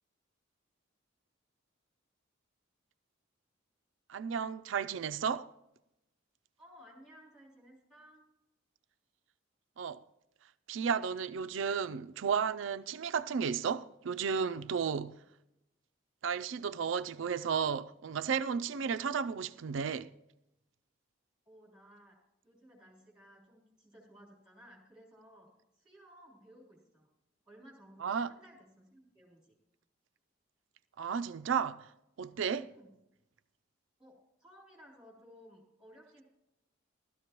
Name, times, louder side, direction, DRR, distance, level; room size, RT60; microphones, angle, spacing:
voice 1, 4.1-5.5 9.8-10.0 10.7-15.1 16.2-20.1 28.0-28.3 31.0-31.9 32.2-32.7, right 6 dB, 70° right, 0.4 m, -33 dB
voice 2, 6.6-8.3 21.5-27.1 27.5-29.6 32.7-33.0 34.0-36.2, equal, 5° right, 3.6 m, -58 dB
15.0 x 13.0 x 3.0 m
head